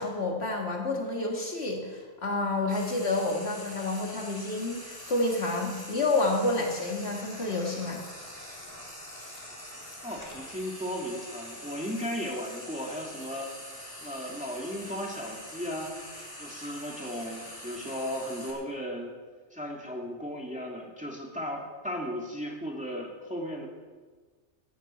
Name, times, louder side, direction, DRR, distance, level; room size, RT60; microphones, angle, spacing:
voice 1, 0.0-8.0, left 2 dB, 60° left, 0 dB, 2.3 m, -29 dB
Frying (food), 2.7-18.5, equal, 15° left, 3.2 m, -44 dB
voice 2, 10.0-13.5 14.0-16.0 16.4-19.1 19.5-23.7, equal, 5° right, -1 dB, 2.3 m, -36 dB
15.5 x 14.5 x 4.5 m, 1.4 s
omnidirectional pair, 1.3 m